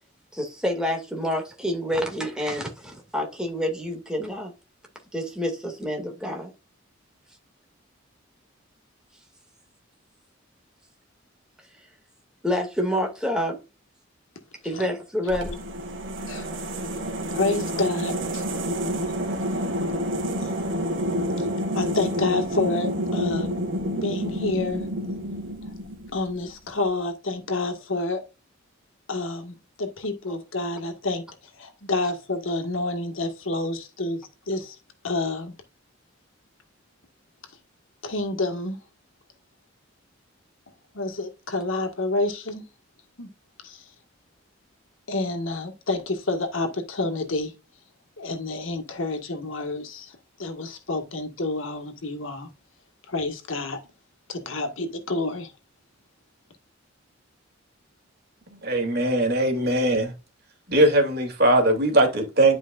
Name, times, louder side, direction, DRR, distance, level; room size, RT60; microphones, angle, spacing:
voice 1, 0.3-4.5 5.1-6.5 12.4-13.6 14.6-15.6, equal, 5° right, 2.2 m, -28 dB
sound 1, 15.3-26.4, equal, 65° right, 2.1 m, -29 dB
voice 2, 16.9-18.4 20.4-20.7 21.4-21.5 21.7-23.6 24.0-24.9 26.1-28.2 29.1-31.2 31.6-34.8 35.0-35.5 38.0-38.8 40.9-42.7 43.2-43.3 43.6-43.9 45.1-47.5 48.2-52.5 53.1-53.8 54.3-55.5, left 2 dB, 80° left, 1.7 m, -29 dB
voice 3, 58.6-60.1 60.7-62.6, right 1 dB, 50° right, 2.6 m, -20 dB
11.0 x 5.1 x 2.5 m
head